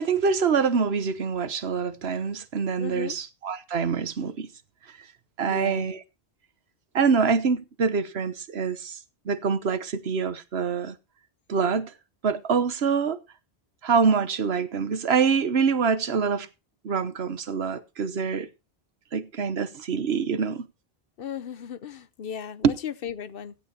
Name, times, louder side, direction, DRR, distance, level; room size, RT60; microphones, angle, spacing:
voice 1, 0.0-4.5 5.4-6.0 6.9-9.0 9.2-10.9 11.5-11.9 12.2-13.2 13.8-16.5 16.8-18.5 19.1-20.7 22.6-22.7, right 5 dB, 80° right, 1.3 m, -25 dB
voice 2, 2.8-3.2 5.4-5.9 21.2-23.5, left 8 dB, 65° left, 0.9 m, -36 dB
16.0 x 10.5 x 2.8 m
omnidirectional pair, 1.1 m